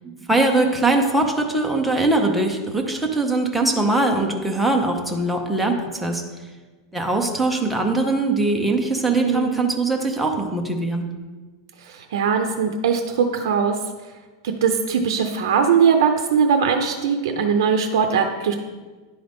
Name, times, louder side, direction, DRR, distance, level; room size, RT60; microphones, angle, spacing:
voice 1, 0.0-6.2 6.9-11.0, right 2 dB, ahead, 1 dB, 0.5 m, -21 dB
voice 2, 9.2-9.6 11.8-13.7 14.4-18.5, right 6 dB, 65° right, 5 dB, 0.6 m, -20 dB
10.0 x 3.9 x 3.5 m, 1.3 s
supercardioid pair, 175°, 2 cm